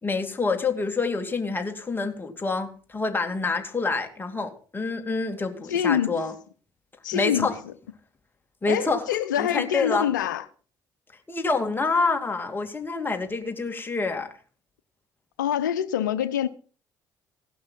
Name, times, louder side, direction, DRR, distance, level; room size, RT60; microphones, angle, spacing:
voice 1, 0.0-6.3 7.1-7.6 8.6-9.0 9.4-10.1 11.3-14.3, left 3 dB, 20° left, 2.5 m, -27 dB
voice 2, 5.7-6.2 7.0-7.7 8.7-10.4 15.4-16.5, left 10 dB, 80° left, 0.9 m, -25 dB
16.5 x 11.5 x 3.9 m
figure-of-eight pair, 50°, 10 cm